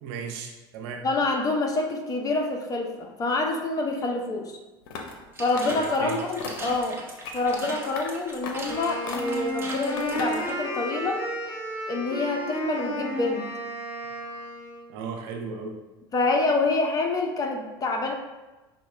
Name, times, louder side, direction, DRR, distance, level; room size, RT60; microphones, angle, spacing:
voice 1, 0.0-1.1 5.7-6.2 14.9-15.8, right 5 dB, 70° right, 3 dB, 0.7 m, -36 dB
voice 2, 1.0-4.6 5.4-7.0 7.3-11.2 11.9-13.5 16.1-18.1, left 3 dB, 30° left, 2 dB, 0.7 m, -27 dB
sound 1, 4.9-5.2 5.5-6.0 6.4-6.8 7.2-7.6 7.9-8.1 8.4-8.7 9.1-9.5 10.0-10.5, left 4 dB, 80° left, 0.6 m, -37 dB
sound 2, 5.3-10.5, right 2 dB, 20° right, 0.8 m, -39 dB
Wind instrument woodwind instrument, 8.7-14.9, equal, 55° left, 1.5 m, -33 dB
5.5 x 2.2 x 3.2 m, 1.1 s
hypercardioid pair, 90°, 12 cm